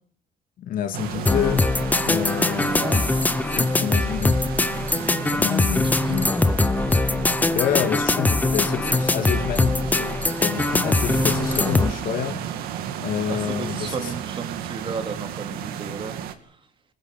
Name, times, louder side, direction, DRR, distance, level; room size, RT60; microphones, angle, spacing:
voice 1, 0.6-1.7 2.0-3.1 3.5-4.4 5.3-6.3 7.5-12.4 13.0-14.1, left 10 dB, 65° left, 2.8 m, -28 dB
sound 1, 0.9-16.4, right 9 dB, 80° right, 2.5 m, -33 dB
sound 2, 1.3-11.9, left 2 dB, 10° left, 1.0 m, -22 dB
voice 2, 2.6-3.0 5.3-5.4 5.7-6.7 13.3-16.1, right 5 dB, 35° right, 3.4 m, -34 dB
24.5 x 21.5 x 5.5 m
cardioid pair, 120°, 15 cm